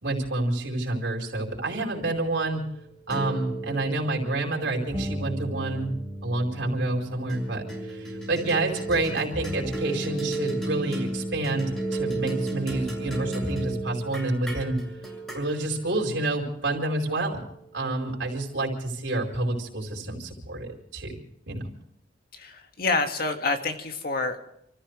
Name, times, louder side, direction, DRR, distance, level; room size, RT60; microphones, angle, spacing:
voice 1, 0.0-2.6 3.1-5.9 6.2-14.8 15.3-17.4 17.7-21.1 21.5-21.6, right 2 dB, 70° right, 0 dB, 4.7 m, -28 dB
sound 1, 1.5-6.1 7.3-17.8, right 2 dB, 5° left, 7.3 m, -35 dB
sound 2, 4.9-10.8 12.1-12.2 12.7-13.7, equal, 25° left, 5.0 m, -38 dB
voice 2, 22.3-24.4, left 3 dB, 55° left, 5 dB, 1.9 m, -27 dB
29.5 x 14.5 x 3.3 m, 0.76 s
head